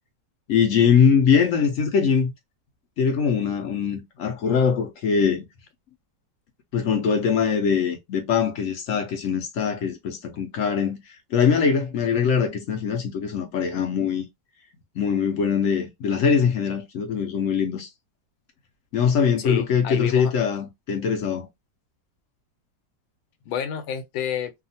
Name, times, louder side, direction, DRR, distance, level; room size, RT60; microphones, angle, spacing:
voice 1, 0.5-2.3 3.0-5.4 6.7-11.0 11.3-14.2 15.0-17.9 18.9-21.5, left 6 dB, 65° left, 0.8 m, -22 dB
voice 2, 19.4-20.3 23.5-24.5, left 8 dB, 85° left, 1.3 m, -29 dB
2.8 x 2.4 x 2.6 m
omnidirectional pair, 2.0 m